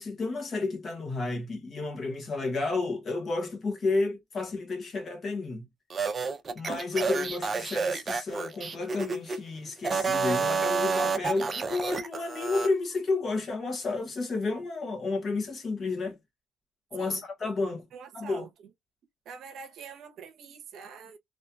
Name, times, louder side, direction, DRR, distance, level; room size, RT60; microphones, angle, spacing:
voice 1, 0.0-5.7 6.5-16.2 16.9-17.9 18.1-18.5, left 3 dB, 40° left, 1.4 m, -31 dB
sound 1, 5.9-9.4 9.8-12.7, right 5 dB, 30° right, 0.6 m, -29 dB
voice 2, 17.9-18.7 19.2-21.2, right 6 dB, 65° right, 0.8 m, -45 dB
3.1 x 2.8 x 2.3 m
cardioid pair, 115°, 0 cm